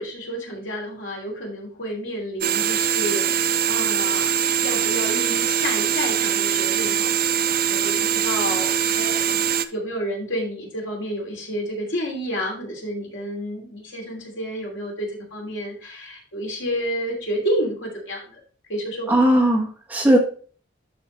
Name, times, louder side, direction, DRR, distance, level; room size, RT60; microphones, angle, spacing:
voice 1, 0.0-4.3 4.6-7.1 7.4-9.4 9.7-18.4 18.7-19.2, equal, 75° left, -1 dB, 2.9 m, -30 dB
sound 1, 2.4-9.7, right 8 dB, 50° right, 0.5 m, -22 dB
voice 2, 19.1-20.2, right 1 dB, 10° right, -1 dB, 1.2 m, -18 dB
12.0 x 4.3 x 3.1 m, 0.42 s
head